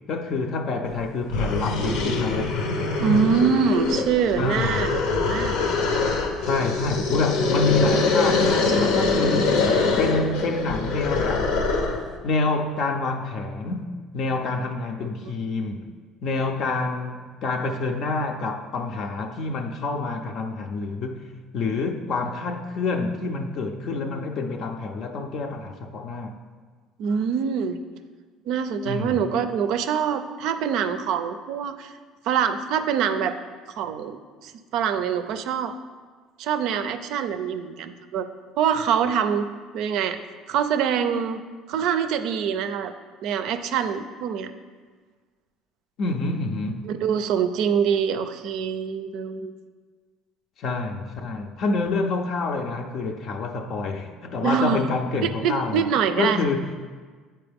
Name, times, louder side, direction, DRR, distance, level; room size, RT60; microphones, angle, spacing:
voice 1, 0.1-2.6 4.4-5.0 6.4-9.6 10.0-11.5 12.2-15.9 16.2-26.4 28.9-29.1 46.0-46.9 50.6-55.9 56.2-56.7, left 3 dB, 55° left, 4 dB, 0.5 m, -27 dB
sound 1, 0.9-1.0 1.3-12.1, left 4 dB, 85° left, 0.8 m, -24 dB
voice 2, 3.0-5.6 27.0-27.8 28.5-31.9 32.3-33.3 33.8-35.7 36.4-38.3 38.6-39.5 39.7-40.2 40.5-41.4 41.7-42.9 43.2-44.5 46.9-49.5 54.4-54.8 55.2-56.4, right 7 dB, 65° right, 9 dB, 0.4 m, -24 dB
8.6 x 4.4 x 3.5 m, 1.5 s
cardioid pair, 130°, 0 cm